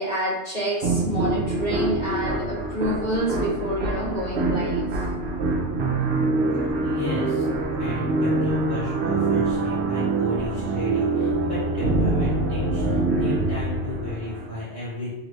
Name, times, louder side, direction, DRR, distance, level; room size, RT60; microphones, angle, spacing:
voice 1, 0.0-5.0, equal, 45° left, -9 dB, 1.5 m, -28 dB
sound 1, 0.8-14.5, right 2 dB, 60° right, 0.7 m, -25 dB
voice 2, 6.8-7.5 7.8-15.1, left 1 dB, 70° left, -9 dB, 1.5 m, -33 dB
3.0 x 2.6 x 3.1 m, 1.0 s
omnidirectional pair, 1.2 m